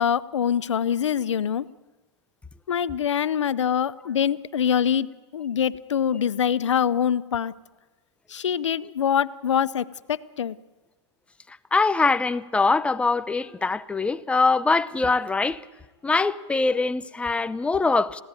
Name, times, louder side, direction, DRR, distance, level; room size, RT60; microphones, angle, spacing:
voice 1, 0.0-1.6 2.7-5.1 5.3-7.5 8.3-10.6, left 8 dB, 90° left, 0.7 m, -24 dB
voice 2, 11.7-15.6 16.0-18.2, left 3 dB, 10° left, 0.7 m, -23 dB
21.0 x 16.0 x 9.0 m
hypercardioid pair, 125°, 15 cm